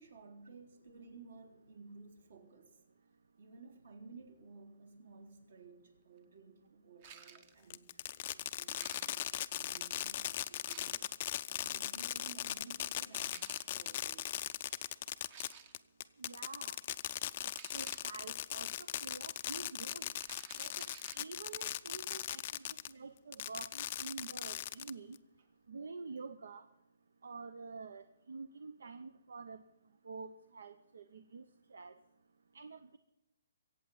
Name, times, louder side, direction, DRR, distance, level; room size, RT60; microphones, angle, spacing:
voice 1, 0.0-2.8 3.4-11.0 11.5-14.4, right 4 dB, 60° right, 3 dB, 3.7 m, -56 dB
sound 1, 7.0-7.6 8.7-9.4 10.7-11.0 13.1-13.7 15.2-15.9 17.5-18.1 20.2-21.3, right 6 dB, 25° right, 0.8 m, -54 dB
Fireworks, 7.7-22.9 23.3-25.2, left 12 dB, 30° left, 0.4 m, -39 dB
voice 2, 16.2-16.8 17.4-20.1 20.6-20.9 21.1-25.2 25.7-26.7 27.2-29.6 30.0-31.4 31.7-31.9 32.5-33.0, right 4 dB, 75° right, 11 dB, 0.9 m, -48 dB
23.0 x 8.5 x 5.6 m, 0.92 s
hypercardioid pair, 175°, 0 cm